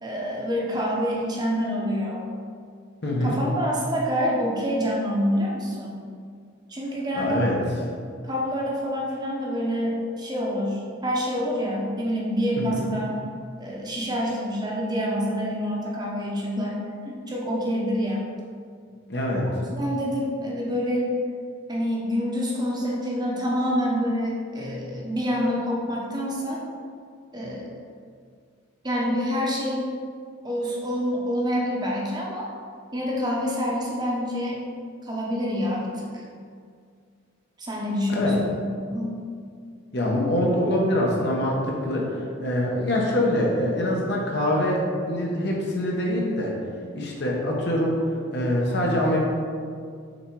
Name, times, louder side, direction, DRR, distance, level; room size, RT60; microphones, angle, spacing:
voice 1, 0.0-2.3 3.2-6.1 6.7-7.4 8.2-13.1 13.6-16.8 17.1-18.3 19.8-21.1 21.7-26.6 27.3-27.6 28.8-29.8 30.4-32.5 32.9-34.6 35.0-36.2 37.6-38.5 38.9-39.2, equal, 20° right, -3 dB, 0.9 m, -27 dB
voice 2, 3.0-3.4 7.2-7.6 12.6-12.8 19.1-19.5 38.1-38.4 39.9-46.5 46.9-48.0 48.3-49.2, left 1 dB, 55° left, -2 dB, 1.2 m, -24 dB
6.5 x 3.5 x 4.7 m, 2.2 s
head